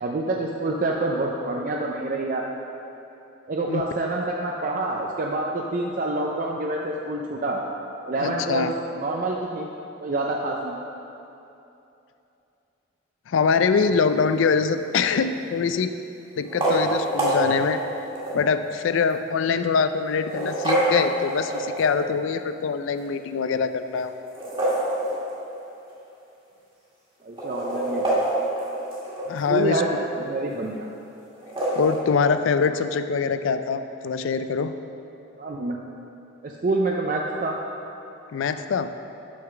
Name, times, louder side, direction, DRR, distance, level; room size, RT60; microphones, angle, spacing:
voice 1, 0.0-2.5 3.5-7.6 8.1-9.7 10.0-10.8 27.2-28.2 29.5-29.9 30.2-30.9 35.4-35.8 36.4-37.6, right 2 dB, 40° right, 0 dB, 0.4 m, -27 dB
voice 2, 8.2-8.7 13.3-15.9 16.4-17.8 18.3-24.1 29.3-29.8 31.8-34.7 38.3-38.9, left 5 dB, 70° left, 10 dB, 0.3 m, -24 dB
sound 1, 14.7-15.2 16.4-18.5 19.1-19.2 20.1-22.1 24.2-25.6 25.9-26.0 26.3-26.4 27.2-29.5 31.3-32.0, right 1 dB, 25° right, 1.6 m, -26 dB
6.2 x 5.7 x 5.9 m, 2.8 s
head